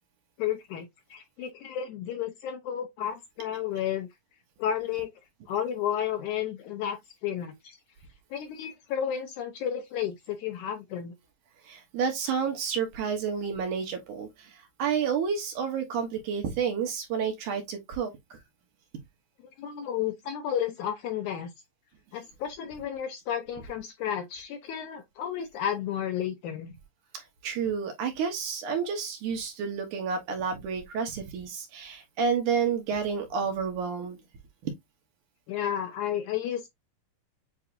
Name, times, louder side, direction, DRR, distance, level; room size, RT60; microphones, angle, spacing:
voice 1, 0.4-4.1 4.6-5.1 5.5-7.8 8.3-11.1 19.6-21.5 22.1-26.7 35.5-36.7, left 9 dB, 75° left, 1.9 m, -32 dB
voice 2, 11.6-14.5 14.8-18.4 27.1-34.2 34.6-34.7, right 6 dB, 70° right, 2.4 m, -30 dB
7.8 x 2.6 x 2.6 m
omnidirectional pair, 4.0 m